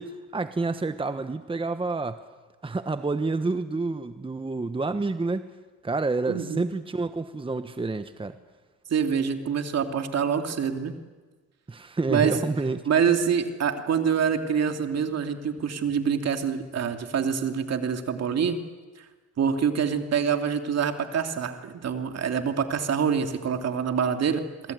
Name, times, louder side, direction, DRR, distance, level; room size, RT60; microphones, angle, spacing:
voice 1, 0.0-2.2 2.6-5.5 5.8-8.4 11.7-12.8, right 3 dB, 15° right, 10 dB, 1.1 m, -29 dB
voice 2, 6.3-6.6 8.9-10.9 12.1-12.4 12.9-18.6 19.4-24.5, right 7 dB, 55° right, 6 dB, 2.8 m, -25 dB
26.5 x 22.0 x 9.5 m, 1.3 s
cardioid pair, 90°, 30 cm